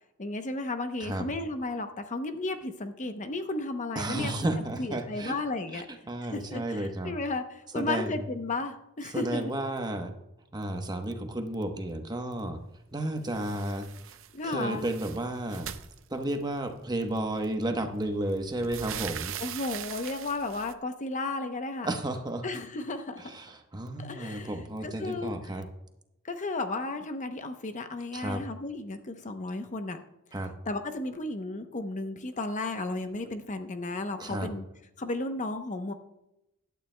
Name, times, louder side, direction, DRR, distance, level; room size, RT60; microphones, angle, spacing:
voice 1, 0.2-4.3 4.8-5.9 6.3-7.4 7.7-9.5 14.3-14.8 19.4-21.9 22.4-23.2 24.0-24.5 24.8-25.3 26.2-30.0 30.7-34.6 35.0-35.9, left 2 dB, 35° left, 7 dB, 0.7 m, -33 dB
voice 2, 3.9-5.4 5.7-7.2 7.7-8.3 9.0-10.1 10.5-12.6 12.9-14.2 14.4-15.7 16.1-19.4 21.8-22.5 23.2-25.7 28.1-28.4 30.3-30.5 34.2-34.5, right 1 dB, 20° right, 5 dB, 1.0 m, -32 dB
sound 1, 13.3-14.3 14.6-16.6 17.5-17.6 18.0-20.7, right 10 dB, 65° right, 0.6 m, -41 dB
16.0 x 11.5 x 2.2 m, 0.87 s
head